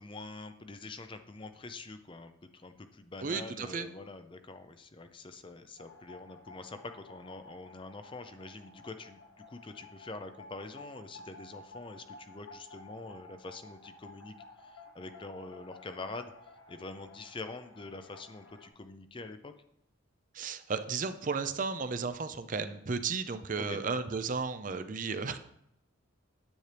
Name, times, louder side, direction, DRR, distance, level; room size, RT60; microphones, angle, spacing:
voice 1, 0.0-16.3 16.7-19.5 23.5-23.8, left 3 dB, 25° left, 8 dB, 0.5 m, -45 dB
voice 2, 3.2-3.9 20.3-25.4, right 4 dB, 40° right, 10 dB, 0.5 m, -34 dB
sound 1, 5.8-18.7, left 2 dB, 75° left, 1.2 m, -54 dB
9.4 x 8.8 x 3.4 m, 0.78 s
head